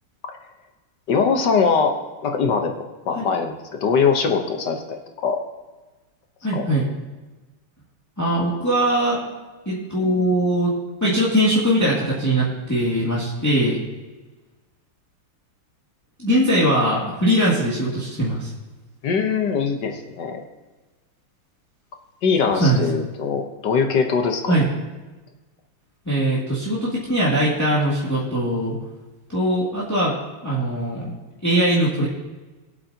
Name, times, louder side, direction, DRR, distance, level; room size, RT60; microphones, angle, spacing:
voice 1, 1.1-2.0 2.2-5.4 6.5-6.6 19.0-20.4 22.2-24.5, left 5 dB, 60° left, 4 dB, 1.5 m, -22 dB
voice 2, 6.4-6.9 8.2-9.2 9.7-10.7 11.0-13.8 16.2-18.5 22.5-22.8 24.5-24.7 26.1-28.8 29.3-30.2 30.4-31.0 31.4-32.1, right 1 dB, 10° left, -7 dB, 2.2 m, -21 dB
22.0 x 7.8 x 2.8 m, 1.2 s
omnidirectional pair, 2.4 m